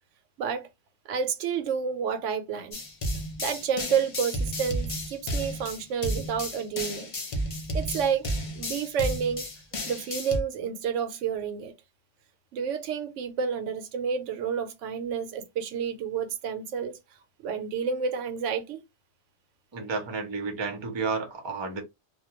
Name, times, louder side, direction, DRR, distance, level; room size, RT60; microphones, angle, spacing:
voice 1, 1.1-2.8 3.4-7.1 7.7-9.5 9.9-11.7 12.5-17.0 17.4-18.8, right 7 dB, 85° right, 0.9 m, -30 dB
sound 1, 2.7-10.4, equal, 40° left, 0.5 m, -32 dB
voice 2, 19.7-21.8, right 4 dB, 30° right, 0.6 m, -31 dB
2.2 x 2.2 x 2.9 m
omnidirectional pair, 1.2 m